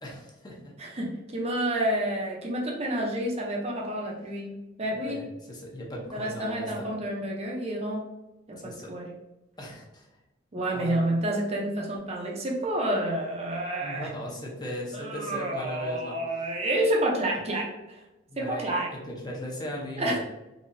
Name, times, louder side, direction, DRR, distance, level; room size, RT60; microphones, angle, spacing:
voice 1, 0.0-0.7 5.0-6.9 8.5-8.9 9.6-10.1 10.7-11.1 13.8-16.2 18.3-20.2, equal, 20° left, -3 dB, 0.8 m, -38 dB
voice 2, 0.8-4.5 4.8-5.2 6.1-8.0 8.5-9.1 10.5-14.1 14.9-18.0 18.4-18.9 20.0-20.2, right 1 dB, 35° right, -1 dB, 0.6 m, -29 dB
4.0 x 2.9 x 2.6 m, 1.0 s
head